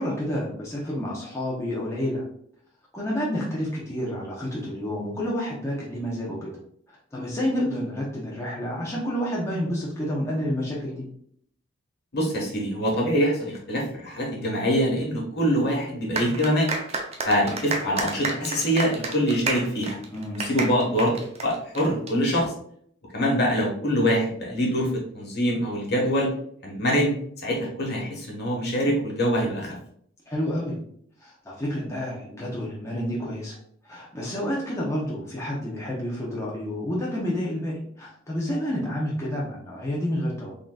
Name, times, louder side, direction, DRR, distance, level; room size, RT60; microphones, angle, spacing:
voice 1, 0.0-2.2 2.9-6.5 7.1-11.0 20.1-20.4 30.3-30.8 31.2-33.6 33.8-40.5, equal, 15° left, -5 dB, 0.8 m, -29 dB
voice 2, 12.1-16.7 17.2-20.0 20.5-21.1 21.4-22.5 23.1-24.9 25.1-26.3 26.6-27.1 27.4-29.7, equal, 55° left, -2 dB, 1.3 m, -24 dB
sound 1, 16.2-22.1, right 3 dB, 35° right, 0.5 m, -31 dB
3.8 x 3.7 x 2.3 m, 0.65 s
head